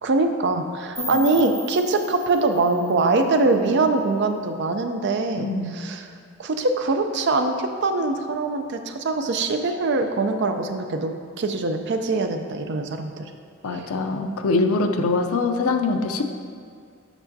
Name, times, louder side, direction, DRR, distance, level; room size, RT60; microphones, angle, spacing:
voice 1, 0.0-6.1 6.4-13.2 13.7-13.9, right 3 dB, 55° right, 6 dB, 0.4 m, -23 dB
sound 1, 0.9-3.9, right 1 dB, 10° left, 1.7 m, -38 dB
voice 2, 5.4-5.8 13.6-16.2, left 3 dB, 85° left, 6 dB, 0.5 m, -23 dB
8.0 x 6.0 x 2.7 m, 2.3 s
head